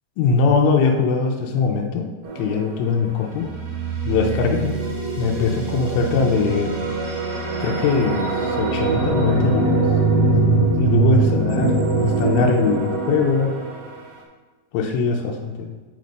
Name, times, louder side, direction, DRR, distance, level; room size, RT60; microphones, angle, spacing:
voice 1, 0.2-2.1 2.4-3.5 4.0-4.8 5.2-6.7 7.6-9.8 10.3-13.5 14.7-15.7, left 5 dB, 80° left, 1 dB, 2.4 m, -21 dB
sound 1, 2.2-2.8 3.3-14.0, right 3 dB, 85° right, 1.3 m, -22 dB
9.1 x 3.2 x 5.2 m, 1.4 s
omnidirectional pair, 4.5 m